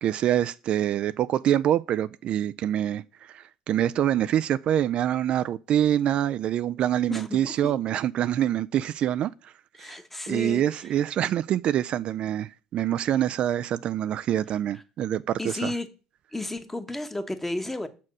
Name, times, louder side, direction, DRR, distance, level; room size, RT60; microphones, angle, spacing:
voice 1, 0.0-9.5 9.8-10.0 10.3-15.7, right 11 dB, 55° right, 0.3 m, -25 dB
voice 2, 7.1-7.7 9.7-10.7 15.4-15.9 16.3-17.9, left 2 dB, 10° left, 1.1 m, -33 dB
6.4 x 4.3 x 6.1 m
hypercardioid pair, 75°, 2 cm